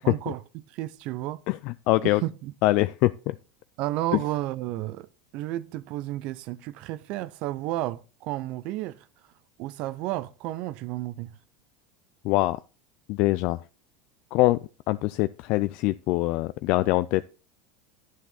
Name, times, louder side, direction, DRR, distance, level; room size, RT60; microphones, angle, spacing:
voice 1, 0.0-1.4 2.0-2.5 3.8-5.1 5.3-9.1 9.6-11.3, right 16 dB, 55° right, 0.5 m, -32 dB
voice 2, 1.5-2.2 2.6-3.3 12.2-12.6 13.1-13.6 14.3-14.6 14.9-17.2, left 18 dB, 60° left, 0.4 m, -24 dB
9.4 x 7.8 x 4.1 m
hypercardioid pair, 105°, 2 cm